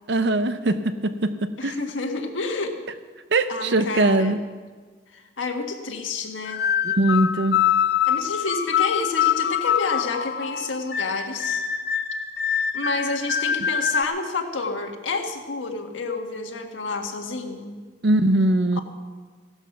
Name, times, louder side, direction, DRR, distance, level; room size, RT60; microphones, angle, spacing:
voice 1, 0.1-1.8 3.3-4.4 6.8-7.6 18.0-18.8, right 2 dB, 60° right, 10 dB, 0.7 m, -21 dB
voice 2, 1.6-2.8 3.5-4.4 5.1-6.6 8.1-11.6 12.7-17.8, left 3 dB, 85° left, 3 dB, 1.7 m, -29 dB
sound 1, 6.5-14.0, left 8 dB, 55° left, 0.6 m, -24 dB
16.5 x 11.5 x 6.1 m, 1.5 s
head